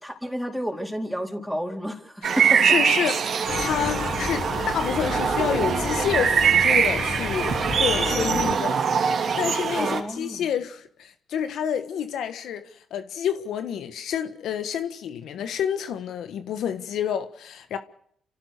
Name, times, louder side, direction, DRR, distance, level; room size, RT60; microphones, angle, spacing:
voice 1, 0.0-2.6 9.7-10.5, equal, ahead, 4.3 m, -31 dB
voice 2, 2.2-17.8, left 8 dB, 75° left, 1.5 m, -29 dB
sound 1, 2.2-10.0, right 6 dB, 60° right, 3.6 m, -23 dB
sound 2, 3.5-8.6, left 5 dB, 60° left, 2.0 m, -32 dB
27.5 x 15.5 x 6.7 m
cardioid pair, 90°, 0 cm